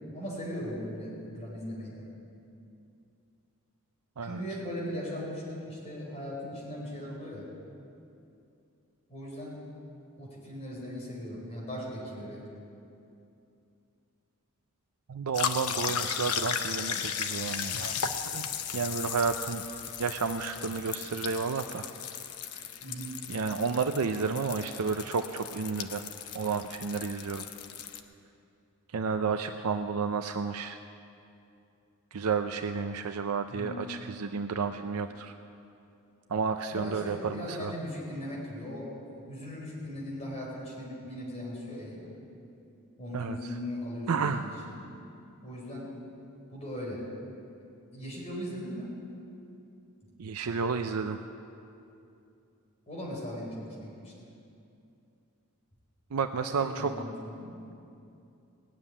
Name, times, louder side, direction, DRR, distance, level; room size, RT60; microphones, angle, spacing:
voice 1, 0.1-2.0 4.2-7.5 9.1-9.6 10.2-12.5 22.8-23.2 33.5-33.8 36.7-38.9 39.3-42.1 43.0-44.8 45.4-45.9 46.5-47.1 47.9-48.9 52.9-54.1 56.6-57.5, equal, 30° left, -4 dB, 4.8 m, -38 dB
voice 2, 15.1-18.0 18.3-19.6 20.0-21.9 23.3-26.0 26.3-27.5 28.9-30.8 32.1-35.3 36.3-37.7 43.1-43.6 44.1-44.5 50.2-51.2 56.1-56.9, right 5 dB, 75° right, 7 dB, 0.5 m, -31 dB
sound 1, 15.3-28.0, left 7 dB, 75° left, 0.8 m, -36 dB
18.0 x 7.4 x 9.8 m, 2.7 s
head